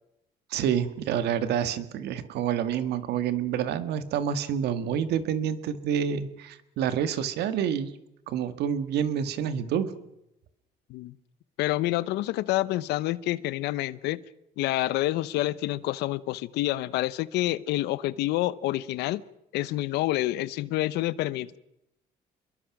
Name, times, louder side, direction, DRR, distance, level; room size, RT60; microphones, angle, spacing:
voice 1, 0.5-7.9 8.3-9.9, right 8 dB, 80° right, 12 dB, 1.8 m, -28 dB
voice 2, 11.6-14.2 14.6-19.2 19.5-21.6, left 16 dB, 90° left, 18 dB, 0.8 m, -28 dB
27.0 x 22.0 x 6.0 m, 0.85 s
cardioid pair, 110°, 17 cm